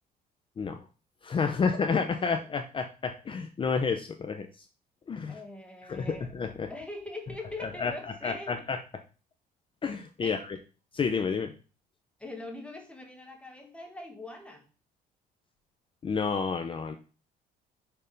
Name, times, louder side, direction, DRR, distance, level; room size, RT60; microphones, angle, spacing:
voice 1, 1.2-4.5 5.1-5.4 5.9-6.7 7.6-7.9 8.2-8.8 9.8-10.6 10.9-11.5 16.0-17.0, left 5 dB, 30° left, 6 dB, 0.7 m, -30 dB
voice 2, 5.3-6.3 6.7-8.6 10.2-10.4 12.2-14.7, left 2 dB, 5° left, 2 dB, 1.4 m, -42 dB
6.7 x 3.5 x 5.2 m, 0.35 s
cardioid pair, 110°, 17 cm